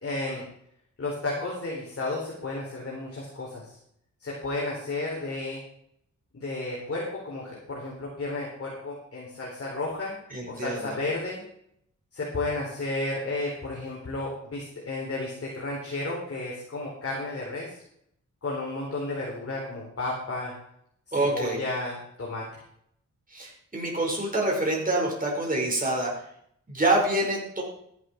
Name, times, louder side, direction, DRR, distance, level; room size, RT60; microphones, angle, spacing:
voice 1, 0.0-0.4 1.0-3.8 4.2-5.6 6.3-10.2 10.5-11.4 12.1-17.8 18.4-20.5 21.1-22.5, left 2 dB, 50° left, -4 dB, 4.4 m, -32 dB
voice 2, 10.3-11.0 21.1-21.6 23.3-26.3 26.7-27.6, right 2 dB, 25° right, -1 dB, 5.4 m, -26 dB
14.0 x 11.5 x 4.8 m, 0.71 s
wide cardioid pair, 130°, 31 cm